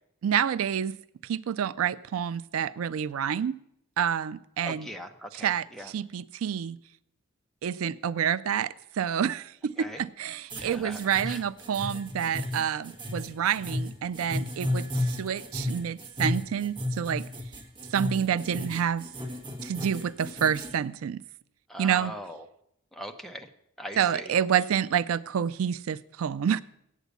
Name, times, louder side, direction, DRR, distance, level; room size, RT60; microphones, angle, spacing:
voice 1, 0.2-0.9 1.3-3.5 4.0-4.9 5.3-6.8 7.6-17.3 17.9-19.1 19.6-21.2 21.8-22.1 24.0-26.6, right 8 dB, 85° right, 0.4 m, -28 dB
voice 2, 4.6-5.9 9.8-10.0 10.6-11.4 21.7-22.5 22.9-23.5 23.8-24.3, equal, ahead, 0.7 m, -40 dB
sound 1, 10.5-20.7, left 1 dB, 20° right, 1.5 m, -33 dB
8.3 x 8.2 x 8.1 m
head